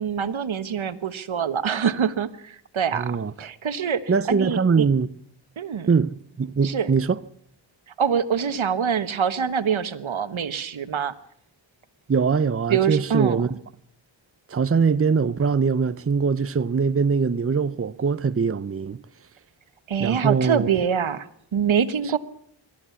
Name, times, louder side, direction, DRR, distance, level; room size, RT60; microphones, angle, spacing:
voice 1, 0.0-3.1 3.4-4.0 4.3-4.9 5.6-5.9 6.6-6.9 8.0-11.1 12.7-13.4 19.9-22.2, right 7 dB, 80° right, 1.3 m, -25 dB
voice 2, 2.9-3.3 4.1-5.1 5.9-7.2 12.1-13.5 14.5-19.0 20.0-20.7, right 5 dB, 30° right, 0.7 m, -22 dB
23.5 x 14.0 x 8.4 m
cardioid pair, 45°, 47 cm